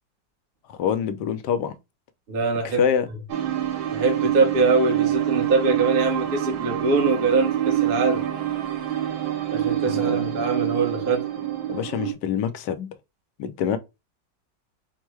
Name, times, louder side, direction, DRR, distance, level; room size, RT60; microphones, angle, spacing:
voice 1, 0.7-1.7 2.6-3.1 9.9-10.4 11.7-12.9 13.4-13.8, left 8 dB, 70° left, 1.2 m, -25 dB
voice 2, 2.3-2.8 3.9-8.2 9.5-11.2, right 3 dB, 35° right, 1.0 m, -23 dB
sound 1, 3.3-12.1, right 12 dB, 85° right, 1.5 m, -26 dB
4.4 x 2.2 x 4.5 m
omnidirectional pair, 2.0 m